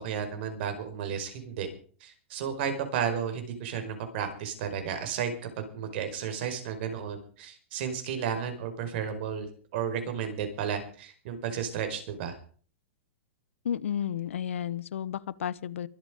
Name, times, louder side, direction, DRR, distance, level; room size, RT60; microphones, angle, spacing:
voice 1, 0.0-1.7 2.0-9.5 9.7-12.4, right 7 dB, 55° right, 7 dB, 5.0 m, -33 dB
voice 2, 13.6-15.9, left 9 dB, 80° left, 19 dB, 1.0 m, -32 dB
23.5 x 8.8 x 5.2 m, 0.43 s
hypercardioid pair, 130°, 7 cm